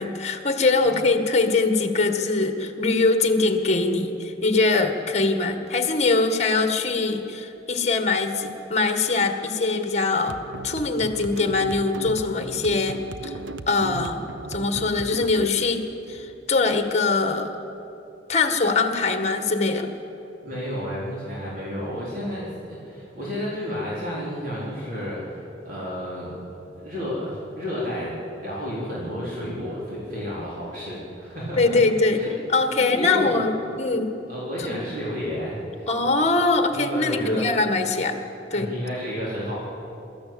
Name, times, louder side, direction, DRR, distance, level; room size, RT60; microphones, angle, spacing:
voice 1, 0.0-10.4 10.6-13.3 13.7-15.8 16.1-17.5 18.3-19.9 31.6-32.2 32.5-34.1 34.6-34.9 35.9-38.2 38.5-38.7, left 3 dB, 40° left, 6 dB, 1.7 m, -22 dB
sound 1, 10.3-17.2, right 3 dB, 85° right, 0.8 m, -37 dB
voice 2, 20.4-26.4 26.8-31.8 32.1-32.3 32.8-33.4 34.3-35.9 36.7-37.5 38.5-39.6, left 1 dB, 50° right, -7 dB, 4.1 m, -31 dB
23.0 x 14.0 x 8.7 m, 2.9 s
head